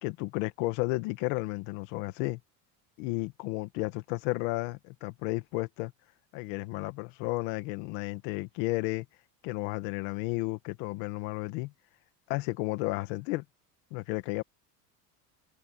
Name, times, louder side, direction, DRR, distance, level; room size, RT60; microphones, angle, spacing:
voice 1, 0.0-2.4 3.0-5.9 6.3-9.1 9.4-11.7 12.3-13.4 13.9-14.4, left 21 dB, 80° left, 1.8 m, -33 dB
cardioid pair, 145°, 38 cm